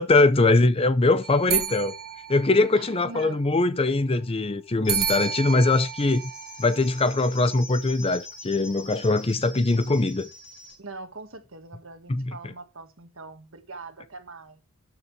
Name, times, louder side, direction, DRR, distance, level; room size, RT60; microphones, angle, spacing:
voice 1, 0.0-1.9 2.3-6.2 6.6-10.3 12.1-12.2, left 2 dB, 25° left, 0.5 m, -22 dB
sound 1, 1.2-3.2 4.9-7.3, right 9 dB, 45° right, 1.5 m, -32 dB
voice 2, 1.5-1.8 2.7-3.4 10.8-14.6, right 3 dB, 60° right, 1.6 m, -42 dB
sound 2, 4.8-10.8, left 3 dB, 45° left, 6.3 m, -44 dB
12.5 x 6.8 x 3.2 m
head